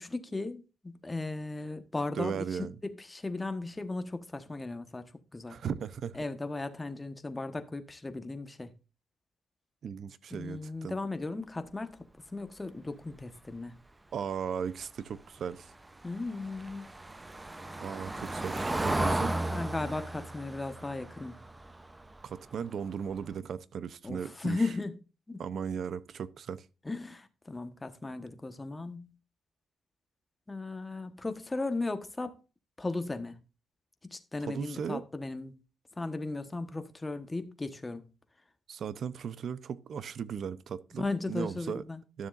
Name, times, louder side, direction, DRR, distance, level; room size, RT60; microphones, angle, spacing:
voice 1, 0.0-2.5 2.8-5.0 5.3-5.6 6.1-8.7 10.3-12.0 12.3-13.8 16.0-16.9 19.0-19.2 19.5-21.4 24.0-24.9 25.3-25.4 26.8-29.1 30.5-32.3 32.8-33.4 34.0-35.5 36.0-38.1 41.0-42.0, left 3 dB, 20° left, 1.2 m, -36 dB
voice 2, 2.1-2.8 5.5-6.2 9.8-10.9 14.1-15.7 17.8-19.3 22.2-24.6 25.4-26.7 34.4-35.0 38.7-41.8 42.2-42.3, right 7 dB, 60° right, 0.7 m, -37 dB
Car passing by / Engine, 15.6-22.5 22.9-23.1 23.4-23.5, right 1 dB, 15° right, 0.7 m, -35 dB
12.5 x 7.0 x 2.5 m
cardioid pair, 80°, 0 cm